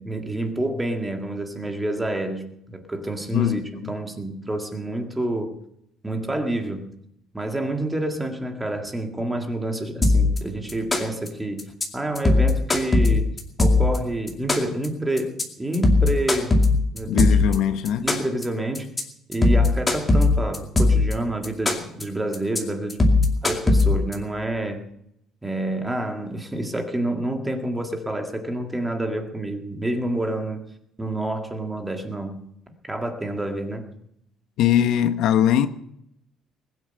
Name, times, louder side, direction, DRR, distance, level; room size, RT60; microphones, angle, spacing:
voice 1, 0.0-5.6 6.0-6.9 7.3-13.3 13.6-16.5 16.9-17.4 18.0-18.9 19.3-23.1 23.4-24.9 25.4-30.6 31.0-32.5 32.9-33.9, right 1 dB, 10° right, 1.9 m, -28 dB
voice 2, 3.3-3.9 17.1-18.1 34.6-35.7, left 10 dB, 65° left, 0.9 m, -21 dB
sound 1, 10.0-10.4 10.7-11.3 11.6-11.8 12.2-14.0 14.3-14.9 15.2-15.4 15.7-17.5 17.9-18.4 18.7-19.0 19.3-21.1 21.4-22.0 22.3-22.6 22.9-24.1, left 2 dB, 15° left, 2.4 m, -18 dB
20.5 x 9.4 x 6.6 m
cardioid pair, 165°, 0 cm